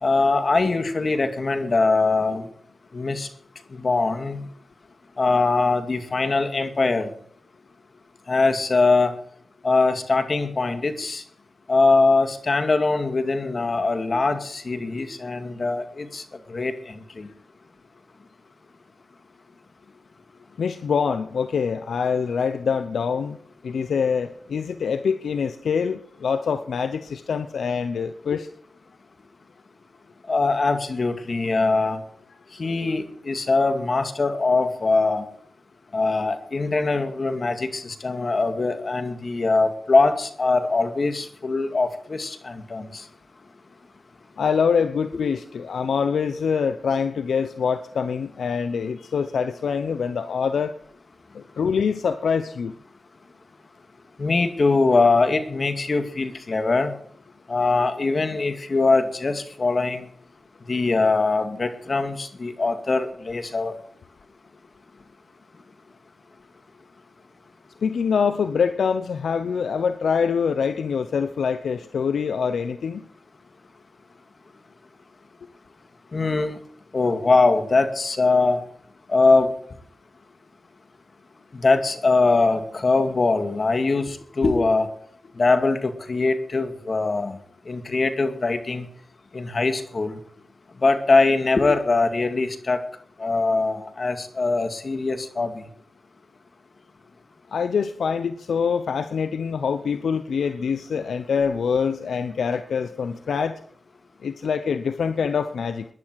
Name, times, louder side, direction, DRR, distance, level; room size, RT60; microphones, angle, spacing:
voice 1, 0.0-2.5 2.9-3.3 3.7-4.4 5.2-7.1 8.3-9.1 9.6-11.2 11.7-16.2 16.5-17.3 30.3-32.0 32.6-35.2 35.9-43.0 54.2-56.9 57.5-60.1 60.7-63.7 76.1-76.6 76.9-78.6 79.1-79.5 81.5-84.9 85.4-87.4 87.7-88.9 89.3-90.2 90.8-92.8 93.2-95.6, left 3 dB, 55° left, 8 dB, 2.3 m, -22 dB
voice 2, 20.6-23.4 23.6-28.5 44.4-50.7 51.3-52.7 67.8-73.0 97.5-103.6 104.2-105.9, left 6 dB, 85° left, 11 dB, 0.8 m, -25 dB
19.5 x 11.0 x 4.8 m, 0.63 s
cardioid pair, 45°, 0 cm